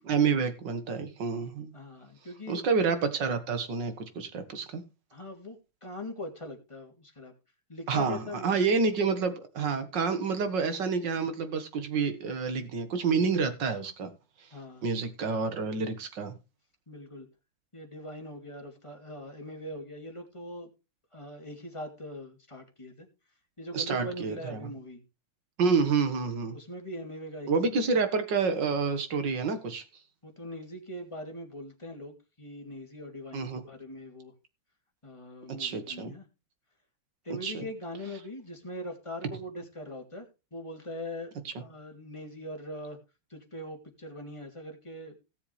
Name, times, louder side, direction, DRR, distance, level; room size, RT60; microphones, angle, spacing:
voice 1, 0.0-1.7 2.5-4.8 7.9-14.1 14.8-16.3 23.7-24.7 25.6-26.6 27.5-29.8 33.3-33.7 35.6-36.1 37.4-37.6, right 5 dB, 55° right, 2.2 m, -28 dB
voice 2, 1.7-2.6 5.1-7.3 7.7-8.6 14.5-14.9 16.9-17.3 17.7-20.7 21.1-23.1 23.6-25.0 26.5-27.8 30.2-34.3 35.0-36.2 37.2-43.0 43.3-45.2, left 1 dB, 15° left, 2.4 m, -41 dB
17.5 x 7.1 x 3.3 m
omnidirectional pair, 2.4 m